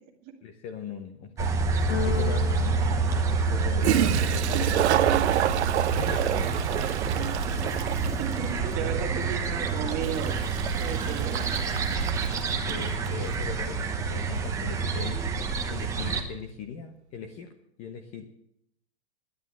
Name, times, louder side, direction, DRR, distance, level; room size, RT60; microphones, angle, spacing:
voice 1, 0.4-2.9 3.4-5.6 6.0-6.5 12.4-17.5 17.8-18.2, left 6 dB, 20° left, 6 dB, 0.8 m, -40 dB
sound 1, 1.4-16.2, right 4 dB, 10° right, 1.0 m, -27 dB
Toilet flush, 1.8-1.9 3.5-3.6 3.8-13.2, right 13 dB, 75° right, 0.6 m, -29 dB
Keyboard (musical), 1.9-4.0, left 9 dB, 70° left, 1.3 m, -36 dB
voice 2, 7.4-10.4 10.7-11.8, right 8 dB, 25° right, 2 dB, 2.0 m, -35 dB
11.0 x 9.7 x 9.3 m, 0.73 s
supercardioid pair, 165°, 34 cm